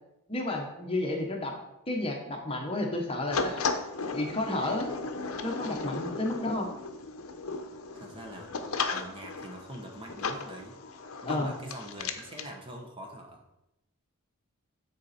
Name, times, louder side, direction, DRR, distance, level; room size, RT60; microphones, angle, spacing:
voice 1, 0.3-1.5 1.9-3.6 4.1-4.9 5.4-6.7 11.2-11.5, left 2 dB, 25° left, 1 dB, 1.0 m, -31 dB
sound 1, 3.3-12.5, left 4 dB, 70° left, 0.7 m, -35 dB
voice 2, 7.9-8.5 8.9-10.8 11.2-13.4, right 1 dB, 25° right, 2 dB, 0.9 m, -44 dB
9.6 x 4.2 x 4.2 m, 0.89 s
head